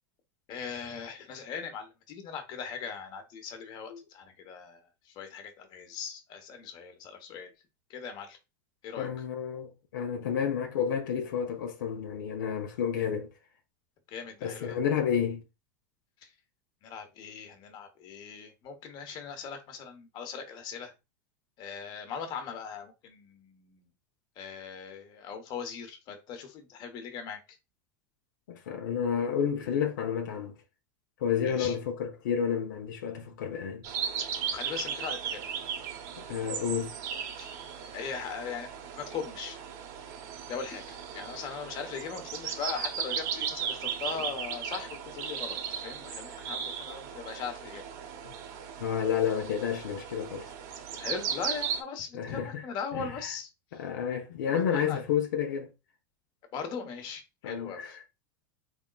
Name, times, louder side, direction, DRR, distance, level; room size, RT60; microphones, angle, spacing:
voice 1, 0.5-4.8 5.2-7.5 7.9-8.4 8.8-9.1 14.1-14.8 16.8-20.9 21.6-23.9 24.4-27.4 31.4-31.8 34.5-35.4 37.3-37.5 37.9-39.6 40.5-47.8 51.0-53.5 54.5-55.0 56.5-58.0, left 6 dB, 45° left, 1.1 m, -39 dB
voice 2, 9.0-13.3 14.4-15.4 28.5-30.5 31.2-33.8 36.2-36.9 48.2-48.3 48.8-50.5 52.1-52.6 52.9-53.3 53.7-55.7 57.4-58.0, left 8 dB, 85° left, 0.7 m, -30 dB
sound 1, 33.8-51.8, right 7 dB, 60° right, 1.0 m, -37 dB
3.7 x 3.5 x 2.3 m
supercardioid pair, 125°, 10 cm